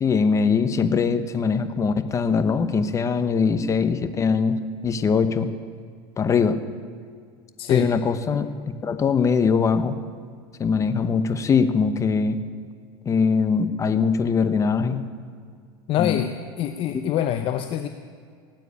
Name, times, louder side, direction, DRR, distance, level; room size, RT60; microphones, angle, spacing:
voice 1, 0.0-4.6 4.8-5.5 6.2-6.6 7.7-8.5 8.8-10.0 10.6-12.4 13.0-15.0 16.0-16.2, left 5 dB, 25° left, 11 dB, 1.0 m, -21 dB
voice 2, 7.6-7.9 15.9-16.3 16.6-17.9, left 11 dB, 45° left, 9 dB, 0.7 m, -24 dB
17.5 x 9.1 x 8.5 m, 2.1 s
supercardioid pair, 120°, 12 cm